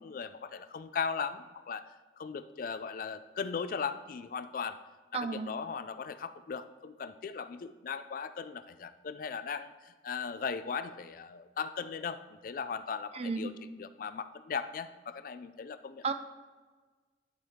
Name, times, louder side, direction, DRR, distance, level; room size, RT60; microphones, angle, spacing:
voice 1, 0.0-1.9 2.2-4.8 5.1-13.5 13.8-16.1, left 6 dB, 50° left, 12 dB, 0.4 m, -38 dB
voice 2, 5.1-5.5 13.1-13.6 16.0-16.1, right 4 dB, 35° right, 10 dB, 0.4 m, -33 dB
10.5 x 4.6 x 3.6 m, 1.3 s
head